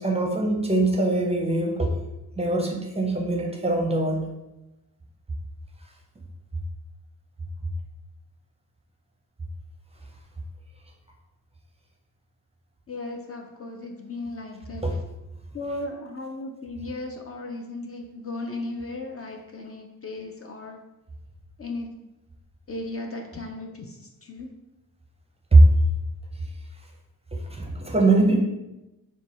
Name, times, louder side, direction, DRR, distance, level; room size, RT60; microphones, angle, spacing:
voice 1, 0.0-2.0 2.4-4.3 14.8-15.0 25.5-25.6 27.3-28.4, right 2 dB, 15° right, 0 dB, 0.5 m, -21 dB
voice 2, 12.9-14.8 15.5-20.8 21.6-21.9 22.7-24.5, left 2 dB, 40° left, 2 dB, 0.4 m, -36 dB
4.4 x 2.3 x 4.1 m, 0.97 s
wide cardioid pair, 135°, 37 cm